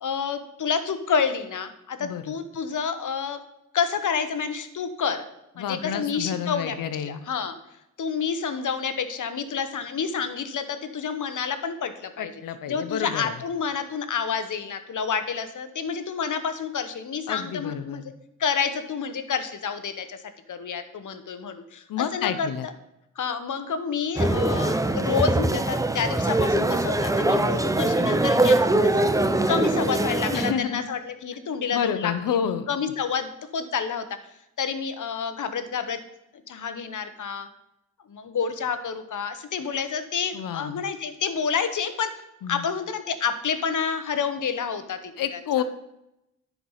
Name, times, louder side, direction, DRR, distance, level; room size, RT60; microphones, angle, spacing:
voice 1, 0.0-3.4 3.7-5.2 5.6-6.7 7.1-7.6 8.0-12.4 12.7-18.0 18.4-20.2 20.5-22.7 23.2-32.4 32.7-34.1 34.6-36.0 36.5-37.5 38.1-42.1 42.5-45.4, left 6 dB, 65° left, 10 dB, 1.0 m, -29 dB
voice 2, 5.6-7.2 12.2-13.4 17.3-18.0 21.9-22.7 30.3-30.8 31.7-32.7 40.3-40.8 42.4-42.7 45.2-45.6, left 8 dB, 90° left, 12 dB, 0.7 m, -29 dB
sound 1, 24.2-30.5, right 2 dB, 10° right, 0.6 m, -22 dB
10.0 x 4.7 x 5.5 m, 0.87 s
cardioid pair, 60°, 32 cm